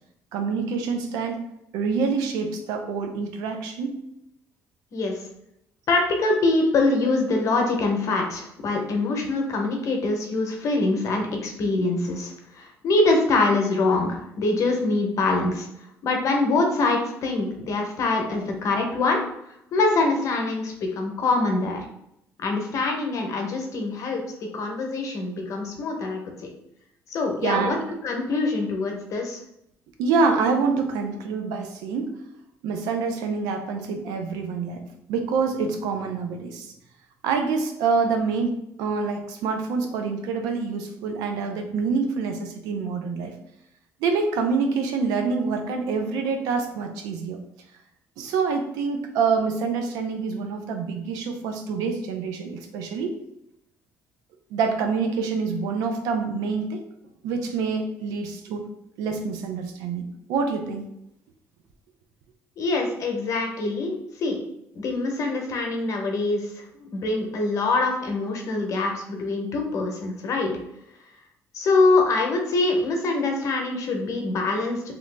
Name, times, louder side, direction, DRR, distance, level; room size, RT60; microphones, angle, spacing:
voice 1, 0.3-1.4 1.7-3.9 27.4-27.8 30.0-32.2 32.6-36.7 37.2-43.3 44.0-47.4 48.2-53.2 54.5-56.8 57.2-58.7 59.0-60.8, right 5 dB, 90° right, 5 dB, 0.5 m, -26 dB
voice 2, 5.9-15.7 16.0-19.2 19.7-21.8 22.4-24.2 24.5-26.2 27.1-27.8 28.0-29.4 62.6-63.9 64.2-64.4 64.7-66.5 66.8-70.5 71.5-74.8, left 3 dB, 60° left, 2 dB, 0.8 m, -24 dB
2.8 x 2.6 x 3.3 m, 0.80 s
cardioid pair, 85°, 6 cm